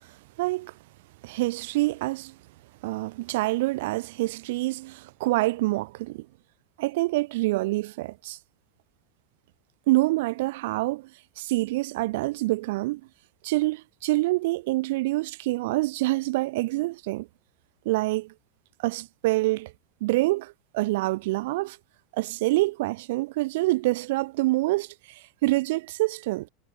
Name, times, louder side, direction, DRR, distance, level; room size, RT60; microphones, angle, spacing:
voice 1, 0.4-0.7 1.2-2.3 2.8-6.3 6.8-8.4 9.9-11.1 11.4-13.0 13.4-17.3 17.9-18.3 18.8-19.7 20.0-21.8 22.1-26.5, right 20 dB, 55° right, 5.8 m, -26 dB
supercardioid pair, 180°, 0 cm